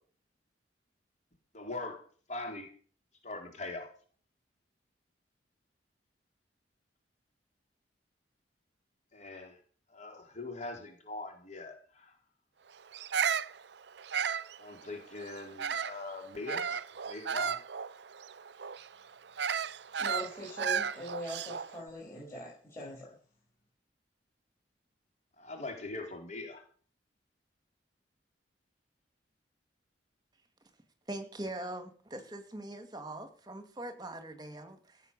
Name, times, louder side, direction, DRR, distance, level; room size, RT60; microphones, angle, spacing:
voice 1, 1.5-2.0 2.3-2.7 3.2-3.9 9.1-9.6 9.9-12.1 14.6-16.7 17.1-17.6 25.4-26.6, left 2 dB, 40° left, 4.1 m, -41 dB
Bird vocalization bird call bird song, 12.9-16.0 16.5-21.8, right 7 dB, 65° right, 0.6 m, -34 dB
voice 2, 20.0-23.1, equal, 15° left, 6.3 m, -42 dB
voice 3, 31.1-35.0, right 1 dB, 25° right, 2.4 m, -42 dB
17.0 x 8.3 x 7.0 m
head